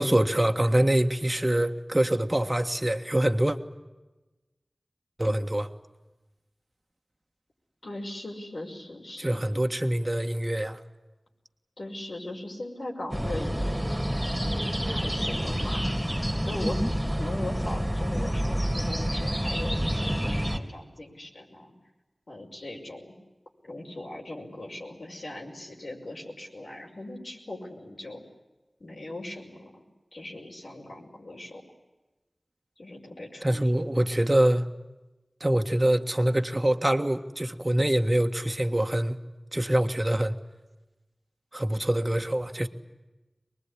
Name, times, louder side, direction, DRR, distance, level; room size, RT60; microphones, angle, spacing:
voice 1, 0.0-3.6 5.2-5.7 9.2-10.8 33.4-34.7 35.4-39.2 39.5-40.3 41.5-42.7, right 1 dB, 25° right, 1.7 m, -25 dB
voice 2, 7.8-9.4 11.8-13.9 14.5-15.9 16.5-21.7 22.3-23.1 23.6-28.2 28.8-29.8 30.1-31.6 32.8-34.0, left 1 dB, 75° left, 5.8 m, -39 dB
sound 1, 13.1-20.6, equal, 5° right, 3.3 m, -28 dB
24.0 x 21.0 x 10.0 m
wide cardioid pair, 50°, 0 cm